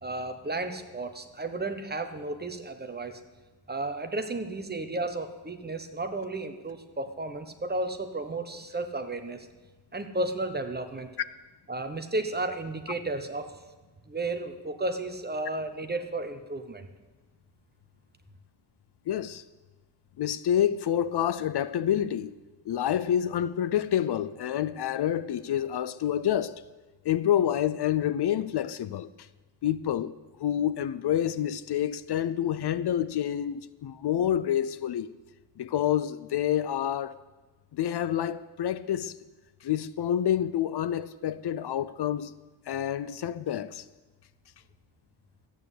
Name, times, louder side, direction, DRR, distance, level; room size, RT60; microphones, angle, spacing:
voice 1, 0.0-3.2 3.7-9.5 9.9-11.1 11.7-13.5 14.1-16.9, right 2 dB, 20° right, 1.1 m, -33 dB
voice 2, 19.1-19.4 20.2-22.4 22.7-26.6 27.0-29.1 29.6-30.1 30.4-35.1 35.6-37.2 37.7-39.1 39.6-42.3 42.7-43.8, left 10 dB, 65° left, 0.6 m, -28 dB
13.5 x 9.3 x 8.1 m
wide cardioid pair, 130°, 43 cm